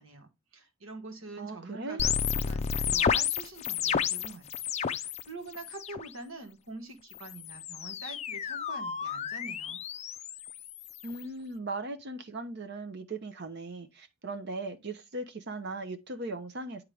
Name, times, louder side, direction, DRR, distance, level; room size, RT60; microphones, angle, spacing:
voice 1, 0.0-4.6 4.9-9.8, right 3 dB, 85° right, 1.6 m, -45 dB
voice 2, 1.4-2.0 11.0-16.8, right 2 dB, 55° right, 0.8 m, -38 dB
sound 1, 2.0-5.2 5.5-6.1 7.1-11.2, left 7 dB, 35° left, 0.4 m, -32 dB
9.3 x 3.6 x 3.3 m
head